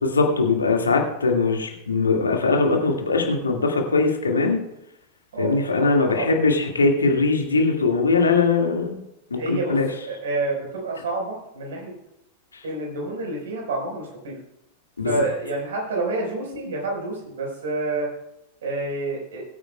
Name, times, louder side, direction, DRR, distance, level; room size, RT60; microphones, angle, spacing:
voice 1, 0.0-4.6 5.4-9.0 9.3-9.9 15.0-15.2, left 3 dB, 75° left, 2 dB, 1.9 m, -21 dB
voice 2, 5.3-6.3 9.3-9.8 10.1-11.9 12.6-14.4 15.0-18.1 18.6-19.4, right 2 dB, 65° right, 1 dB, 4.4 m, -28 dB
21.5 x 8.9 x 2.3 m, 0.86 s
figure-of-eight pair, 90°, 0 cm